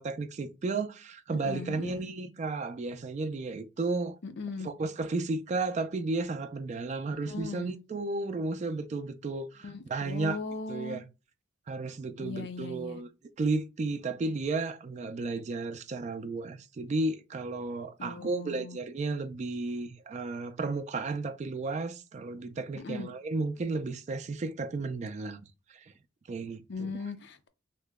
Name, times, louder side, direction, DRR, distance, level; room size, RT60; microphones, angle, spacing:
voice 1, 0.0-4.2 4.6-10.4 10.7-11.1 11.7-13.1 13.4-25.4 25.7-25.9 26.3-26.9, right 3 dB, 40° right, 0.3 m, -33 dB
voice 2, 1.3-1.9 4.2-4.7 7.3-7.7 9.6-11.0 12.2-13.0 18.0-18.8 22.7-23.1 26.7-27.5, left 4 dB, 65° left, 0.5 m, -38 dB
2.9 x 2.1 x 3.4 m
head